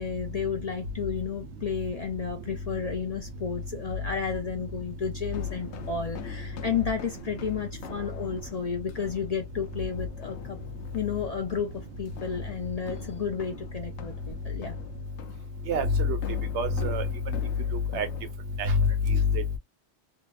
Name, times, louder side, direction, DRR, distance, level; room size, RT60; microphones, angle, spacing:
voice 1, 0.0-10.6 10.9-14.7, left 6 dB, 55° left, 0.4 m, -32 dB
sound 1, 5.3-18.3, left 9 dB, 80° left, 0.9 m, -45 dB
voice 2, 15.7-16.2 16.5-17.0 17.9-18.1 18.6-18.7 19.1-19.4, left 1 dB, 90° right, 0.9 m, -25 dB
2.7 x 2.0 x 2.3 m
omnidirectional pair, 1.2 m